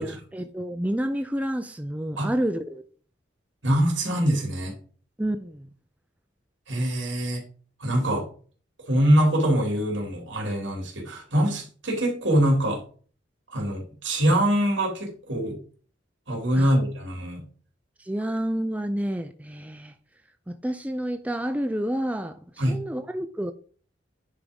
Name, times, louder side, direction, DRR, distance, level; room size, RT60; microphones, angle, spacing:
voice 1, 0.0-2.8 5.2-5.7 16.5-16.7 18.0-19.9 20.6-22.4 22.7-23.5, right 1 dB, 10° right, 0.5 m, -29 dB
voice 2, 3.6-4.7 6.7-7.4 7.8-8.2 8.9-12.8 13.5-15.6 16.3-17.4 22.6-22.8, right 1 dB, 70° right, 3.2 m, -23 dB
9.8 x 3.6 x 5.3 m
head